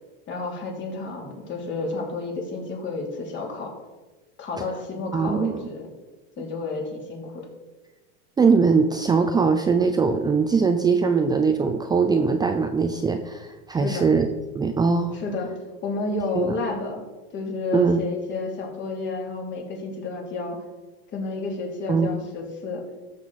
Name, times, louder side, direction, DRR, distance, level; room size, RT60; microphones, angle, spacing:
voice 1, 0.3-3.8 4.4-5.9 6.4-7.5 13.7-14.1 15.1-15.5 15.8-17.0 17.3-20.6 21.1-22.8, left 3 dB, 35° left, 0 dB, 3.0 m, -31 dB
voice 2, 5.1-5.6 8.4-14.3 14.5-15.2 16.4-16.6 17.7-18.0 21.9-22.2, right 5 dB, 15° right, 6 dB, 0.5 m, -21 dB
13.5 x 6.6 x 4.1 m, 1.2 s
supercardioid pair, 120°, 32 cm